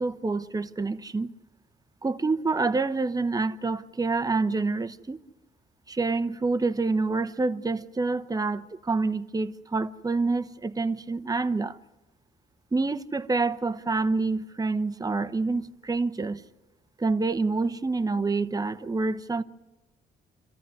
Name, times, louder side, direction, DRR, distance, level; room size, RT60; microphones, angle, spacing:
voice 1, 0.0-1.3 2.0-5.2 5.9-11.8 12.7-16.4 17.0-19.4, right 3 dB, 20° right, 0.9 m, -27 dB
27.0 x 14.5 x 9.7 m
cardioid pair, 90°, 20 cm